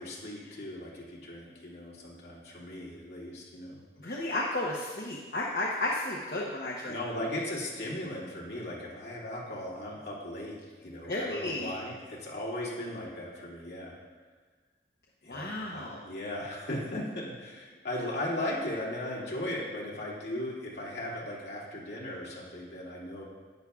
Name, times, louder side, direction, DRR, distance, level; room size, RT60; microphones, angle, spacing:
voice 1, 0.0-3.8 6.9-14.0 15.2-23.2, left 1 dB, 70° left, -6 dB, 2.4 m, -37 dB
voice 2, 4.0-7.3 11.0-11.7 15.3-16.0 17.9-18.1, left 2 dB, 55° left, -3 dB, 0.8 m, -33 dB
10.5 x 9.3 x 2.4 m, 1.4 s
head